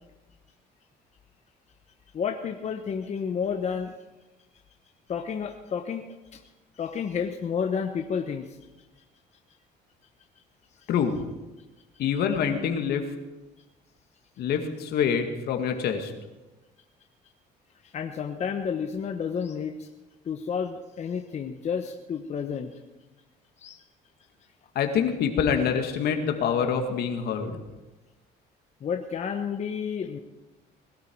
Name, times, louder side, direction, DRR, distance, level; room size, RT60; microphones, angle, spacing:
voice 1, 2.1-3.9 5.1-6.4 6.7-8.6 17.8-19.9 20.2-22.8 23.6-23.8 28.8-30.2, left 6 dB, 40° left, 4 dB, 1.1 m, -31 dB
voice 2, 12.0-13.1 14.4-16.1 24.8-27.6, left 7 dB, 70° left, 5 dB, 2.1 m, -26 dB
20.5 x 13.0 x 4.7 m, 1.1 s
cardioid pair, 110°, 17 cm